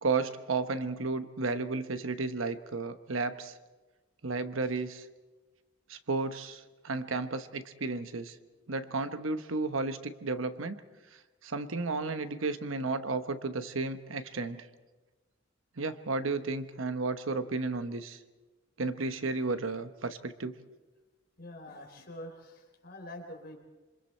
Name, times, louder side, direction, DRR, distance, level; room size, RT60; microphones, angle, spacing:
voice 1, 0.0-3.5 4.2-5.1 5.9-8.4 8.7-10.8 11.1-14.7 15.8-18.2 18.8-20.5, right 3 dB, 80° right, 10 dB, 1.0 m, -33 dB
voice 2, 21.4-23.6, left 1 dB, 50° left, 2 dB, 4.1 m, -45 dB
27.0 x 25.0 x 4.5 m, 1.2 s
head